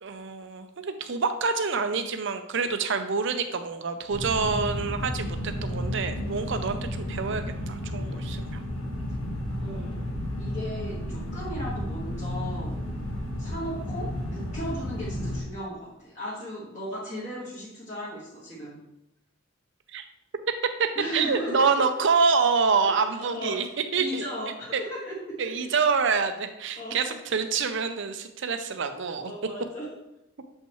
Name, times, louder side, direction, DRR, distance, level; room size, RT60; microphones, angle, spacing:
voice 1, 0.0-8.6 19.9-20.0 20.8-20.9 21.1-23.6 23.9-24.3 24.7-24.8 25.4-29.3, right 5 dB, 60° right, 8 dB, 0.6 m, -26 dB
sound 1, 4.1-15.4, left 1 dB, 80° left, 1.4 m, -32 dB
voice 2, 9.6-10.0 10.4-12.9 13.4-18.8 21.0-21.9 22.8-23.6 24.0-25.5 26.8-27.1 29.3-29.9, equal, 35° left, -9 dB, 1.7 m, -36 dB
7.5 x 5.5 x 3.1 m, 0.86 s
head